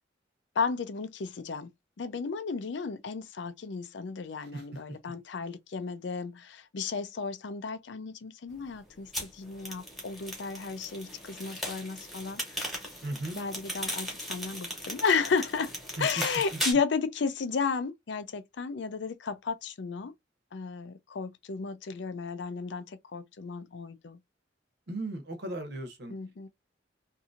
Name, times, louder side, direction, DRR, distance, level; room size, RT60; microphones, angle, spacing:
voice 1, 0.6-1.7 2.0-12.7 13.4-20.1 20.5-24.2 26.1-26.5, left 5 dB, 70° left, 0.5 m, -33 dB
sound 1, 9.1-16.7, equal, ahead, 1.1 m, -37 dB
voice 2, 13.0-13.4 16.0-16.1 24.9-26.1, right 2 dB, 60° right, 0.9 m, -36 dB
2.8 x 2.6 x 2.4 m
head